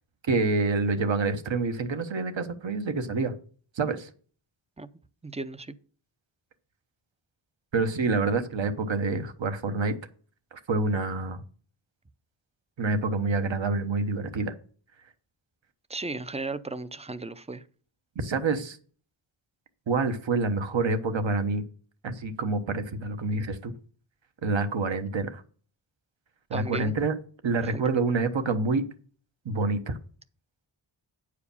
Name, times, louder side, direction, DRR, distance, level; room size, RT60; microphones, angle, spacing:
voice 1, 0.3-3.3 3.8-4.1 7.7-9.9 10.7-11.4 12.8-14.5 18.2-18.8 19.9-21.6 22.0-23.7 24.4-25.4 26.5-27.1 27.4-28.8 29.4-30.0, right 3 dB, 60° right, 1.1 m, -27 dB
voice 2, 5.2-5.7 15.9-17.6 26.5-26.9 27.6-27.8, right 3 dB, 15° right, 0.5 m, -35 dB
9.0 x 4.9 x 6.9 m
wide cardioid pair, 95°, 50 cm